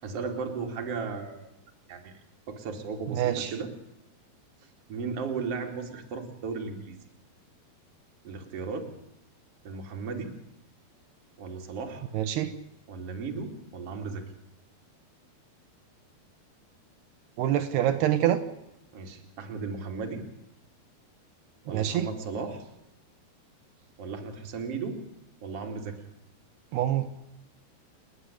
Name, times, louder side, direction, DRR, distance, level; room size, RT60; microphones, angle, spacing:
voice 1, 0.0-1.6 1.9-2.2 2.5-3.7 4.9-7.0 8.2-8.9 9.6-10.3 11.4-12.1 12.9-14.2 18.9-20.2 21.6-22.6 24.0-25.0 25.4-26.0, right 4 dB, 40° right, 3 dB, 3.1 m, -35 dB
voice 2, 3.1-3.5 12.1-12.5 17.4-18.4 21.7-22.1 26.7-27.2, right 12 dB, 80° right, 8 dB, 3.1 m, -26 dB
29.5 x 9.9 x 9.9 m, 0.87 s
omnidirectional pair, 4.7 m